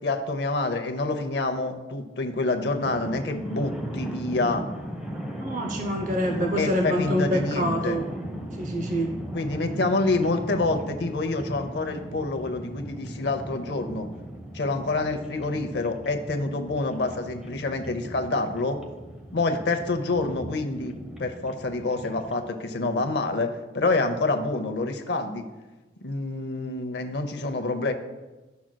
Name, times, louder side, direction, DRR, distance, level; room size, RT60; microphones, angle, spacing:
voice 1, 0.0-4.6 6.6-8.0 9.3-14.1 14.5-18.8 19.3-25.5 26.0-27.9, left 2 dB, 65° left, 6 dB, 0.7 m, -27 dB
sound 1, 2.8-22.5, equal, 5° right, 0.7 m, -37 dB
voice 2, 5.4-8.1 8.6-9.1, equal, 45° right, 3 dB, 0.6 m, -26 dB
11.5 x 6.1 x 2.2 m, 1.1 s
head